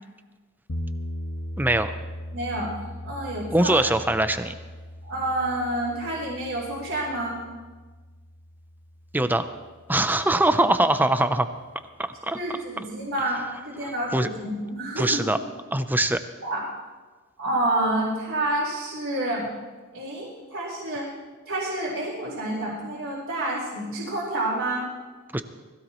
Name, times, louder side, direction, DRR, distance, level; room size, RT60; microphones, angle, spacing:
sound 1, 0.7-10.7, equal, 55° left, 1.4 m, -39 dB
voice 1, 1.6-1.9 3.5-4.5 9.1-9.5 9.9-11.5 12.2-12.4 13.8-14.3 15.0-15.4 15.7-16.2 25.3-25.4, right 1 dB, 10° right, 10 dB, 0.6 m, -22 dB
voice 2, 2.3-2.8 3.0-3.8 5.1-7.4 12.3-15.3 16.4-16.6 17.4-19.5 19.9-21.1 21.5-24.9, right 1 dB, 65° right, -8 dB, 3.9 m, -28 dB
21.0 x 15.5 x 3.1 m, 1.4 s
head